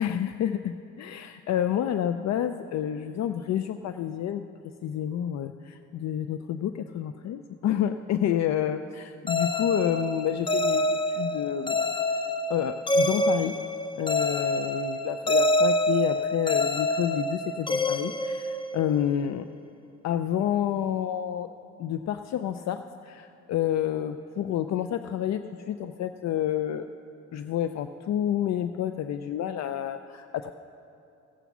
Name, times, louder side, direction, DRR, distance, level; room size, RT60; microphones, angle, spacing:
voice 1, 0.0-4.5 4.8-11.9 12.5-13.6 13.9-19.5 20.0-21.5 21.8-26.9 27.3-30.5, left 10 dB, 60° left, 10 dB, 0.5 m, -29 dB
sound 1, 9.3-19.1, left 1 dB, 15° left, 0.6 m, -27 dB
16.0 x 8.1 x 6.0 m, 2.8 s
cardioid pair, 90°, 30 cm